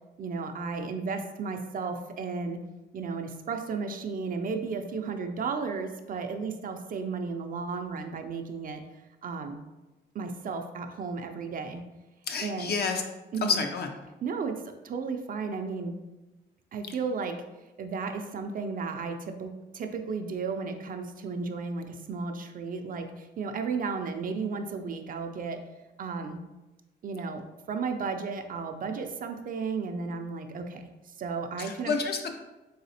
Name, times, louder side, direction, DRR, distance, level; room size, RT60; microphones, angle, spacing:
voice 1, 0.2-2.6 2.9-8.8 9.2-9.6 10.1-11.9 12.4-12.7 13.3-13.6 14.2-16.0 16.7-17.4 17.8-25.6 26.0-26.4 27.0-27.4 27.7-30.9 31.2-31.9, right 4 dB, 45° right, 6 dB, 0.4 m, -34 dB
voice 2, 12.3-13.0 13.4-13.9 31.6-32.4, left 5 dB, 55° left, 4 dB, 0.6 m, -29 dB
4.0 x 3.3 x 2.8 m, 1.1 s
cardioid pair, 90°, 20 cm